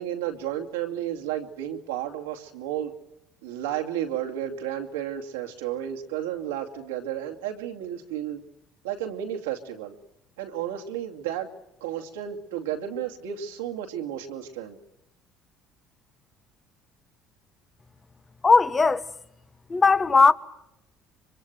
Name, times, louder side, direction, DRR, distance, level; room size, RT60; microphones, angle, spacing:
voice 1, 0.0-2.9 3.4-8.4 8.8-9.9 10.4-11.5 11.8-14.8, right 10 dB, 85° right, 2.5 m, -32 dB
voice 2, 18.4-19.1 19.7-20.3, left 4 dB, 30° left, 1.4 m, -18 dB
24.5 x 24.5 x 7.9 m
hypercardioid pair, 65°, 0 cm